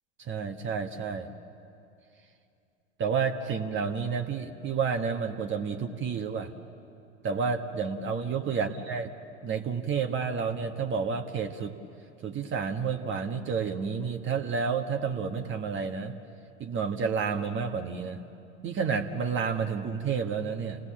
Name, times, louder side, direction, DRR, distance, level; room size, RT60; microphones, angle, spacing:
voice 1, 0.2-1.3 3.0-6.5 7.2-9.1 9.4-11.7 12.2-16.1 16.6-18.2 18.6-20.9, right 6 dB, 35° right, 5 dB, 1.4 m, -30 dB
28.5 x 18.5 x 7.5 m, 2.7 s
hypercardioid pair, 85°, 36 cm